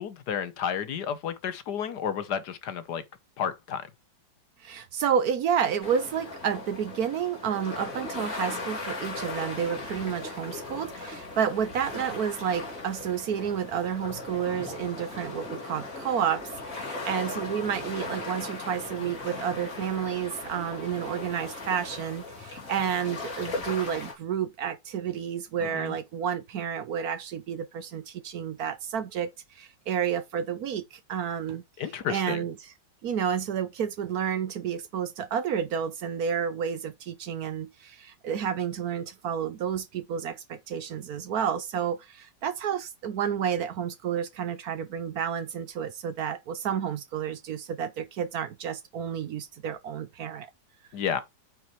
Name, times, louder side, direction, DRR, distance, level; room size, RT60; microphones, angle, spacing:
voice 1, 0.0-3.0 3.4-3.9 25.6-26.0 31.8-32.4 50.9-51.2, left 8 dB, 65° left, 1.5 m, -31 dB
voice 2, 4.6-31.6 32.1-32.7 33.0-50.5, right 8 dB, 65° right, 1.1 m, -30 dB
sound 1, 5.8-24.1, left 3 dB, 45° left, 3.2 m, -38 dB
8.7 x 5.8 x 3.1 m
omnidirectional pair, 1.9 m